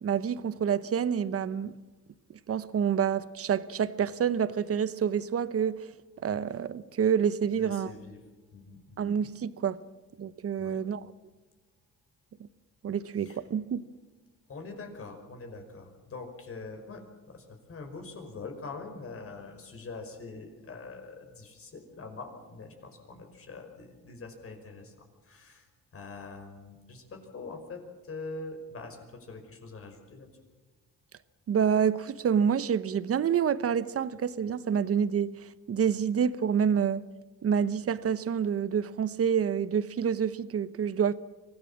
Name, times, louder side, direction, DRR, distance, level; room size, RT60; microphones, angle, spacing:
voice 1, 0.0-1.7 2.3-5.8 6.2-7.9 9.0-9.8 10.2-11.0 12.8-13.8 31.5-37.0 37.4-41.1, right 7 dB, 50° right, 1.0 m, -28 dB
voice 2, 7.5-8.2 8.5-9.1 10.6-10.9 13.2-13.4 14.5-24.9 25.2-30.3, left 3 dB, 50° left, 5.3 m, -44 dB
25.0 x 17.0 x 7.4 m
cardioid pair, 90°, 30 cm